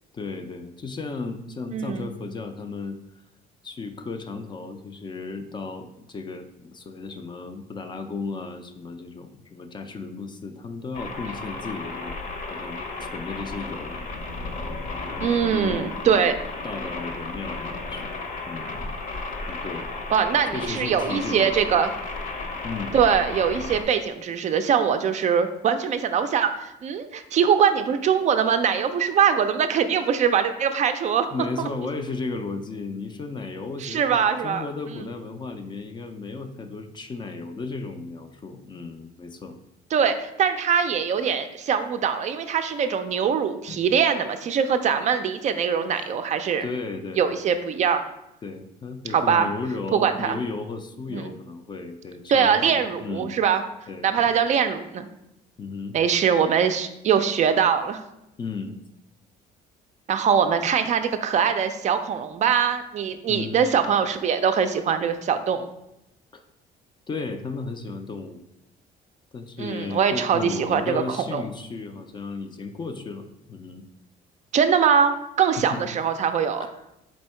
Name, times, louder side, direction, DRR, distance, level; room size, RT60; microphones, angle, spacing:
voice 1, 0.1-3.0 3.6-14.0 14.7-14.8 15.1-16.3 16.6-18.1 18.5-18.9 19.5-19.9 20.5-21.8 22.6-23.0 31.3-39.6 43.7-43.8 45.9-46.1 46.6-47.4 48.4-53.4 53.9-54.3 55.6-56.0 58.4-58.8 63.3-63.6 66.3-66.4 67.1-68.4 69.3-73.8 75.6-75.8 76.6-76.8, left 4 dB, 25° left, 7 dB, 0.4 m, -34 dB
voice 2, 1.7-2.1 15.2-16.3 20.1-21.9 22.9-31.3 33.8-34.6 39.9-46.7 47.2-48.0 49.1-49.5 49.9-50.4 51.1-51.2 52.3-53.6 54.0-55.1 55.9-58.0 60.1-65.7 69.6-71.4 74.5-76.7, right 7 dB, 45° right, 8 dB, 0.4 m, -22 dB
sound 1, 10.9-23.8, left 3 dB, 50° left, 0.8 m, -34 dB
4.3 x 2.7 x 4.3 m, 0.86 s
cardioid pair, 110°, 17 cm